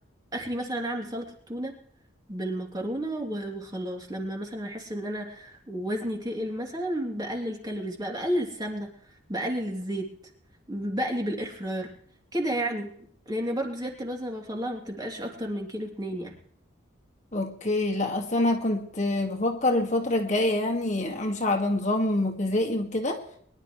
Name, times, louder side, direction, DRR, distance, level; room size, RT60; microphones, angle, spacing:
voice 1, 0.3-1.7 2.3-8.9 9.3-10.1 10.7-11.9 12.3-12.9 13.3-16.3, equal, 20° right, 0 dB, 3.0 m, -31 dB
voice 2, 17.3-23.2, left 1 dB, 35° left, 2 dB, 2.0 m, -26 dB
23.5 x 12.0 x 3.2 m, 0.62 s
head